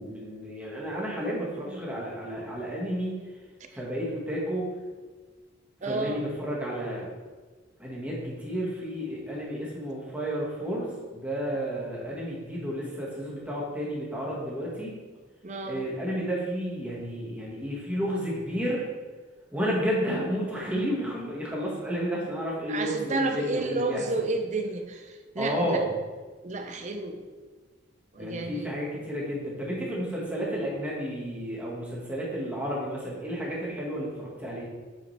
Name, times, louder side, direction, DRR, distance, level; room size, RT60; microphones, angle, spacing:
voice 1, 0.0-3.2 3.7-4.7 5.8-7.1 7.8-15.0 15.6-18.8 19.5-24.0 25.4-25.9 28.2-34.6, equal, 5° right, -5 dB, 1.6 m, -31 dB
voice 2, 5.8-6.2 15.4-15.9 22.7-25.8 26.4-27.2 28.1-28.7, right 3 dB, 35° right, 4 dB, 0.5 m, -31 dB
8.0 x 4.9 x 3.3 m, 1.4 s
head